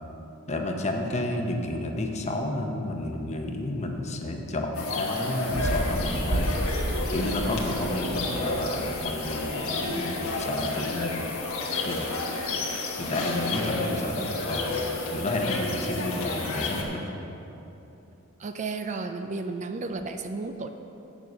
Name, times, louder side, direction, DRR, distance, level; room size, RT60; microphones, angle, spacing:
voice 1, 0.5-6.5 7.1-11.3 11.8-12.1 12.9-17.0, left 1 dB, 35° left, 2 dB, 0.8 m, -31 dB
sound 1, 4.7-16.8, left 3 dB, 75° left, 1.3 m, -31 dB
sound 2, 5.5-10.2, right 1 dB, 50° right, 0.8 m, -32 dB
voice 2, 18.4-20.7, right 3 dB, 35° right, 7 dB, 0.4 m, -33 dB
8.1 x 7.1 x 6.3 m, 2.9 s
head